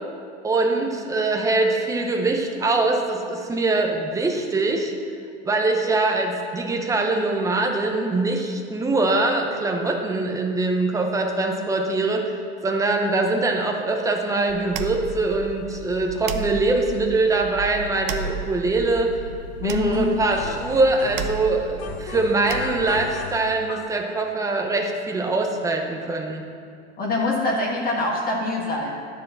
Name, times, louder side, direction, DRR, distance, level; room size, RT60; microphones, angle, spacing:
voice 1, 0.4-4.9 5.4-12.2 12.6-19.1 19.6-26.5, right 2 dB, 10° right, 2 dB, 0.8 m, -23 dB
sound 1, 14.5-23.1, right 5 dB, 55° right, 0.7 m, -34 dB
voice 2, 19.6-20.1 27.0-28.9, left 2 dB, 25° left, -2 dB, 1.3 m, -24 dB
sound 2, 19.9-21.4 21.8-24.0, left 6 dB, 65° left, 1.0 m, -37 dB
10.0 x 4.8 x 7.5 m, 2.3 s
supercardioid pair, 140°, 34 cm